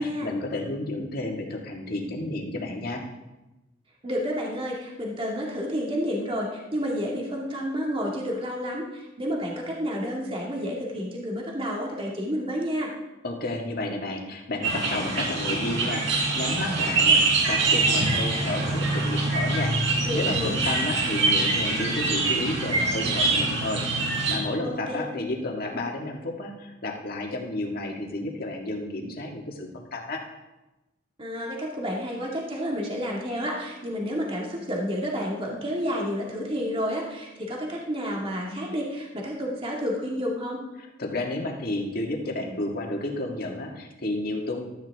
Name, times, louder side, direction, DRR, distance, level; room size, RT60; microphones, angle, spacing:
voice 1, 0.0-3.0 13.2-17.2 17.5-19.7 20.1-23.8 24.3-30.2 40.8-44.6, left 2 dB, 50° left, 1 dB, 1.9 m, -31 dB
voice 2, 4.0-12.9 20.0-20.5 24.6-25.1 31.2-40.6, equal, 30° right, -2 dB, 2.1 m, -30 dB
sound 1, 14.6-24.3, right 3 dB, 70° right, 4.1 m, -24 dB
16.0 x 13.0 x 3.5 m, 1.0 s
head